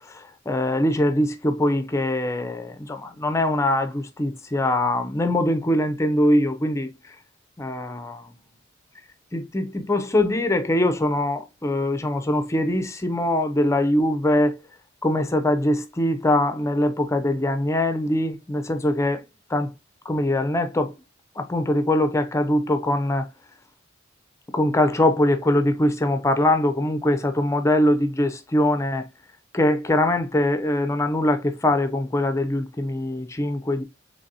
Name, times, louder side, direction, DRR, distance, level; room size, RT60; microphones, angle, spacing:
voice 1, 0.1-6.9 7.6-8.3 9.3-14.6 15.0-19.2 19.5-19.7 20.1-20.9 21.4-23.3 24.5-29.1 29.5-33.8, left 1 dB, 15° left, 0.5 m, -22 dB
3.9 x 3.3 x 2.7 m
head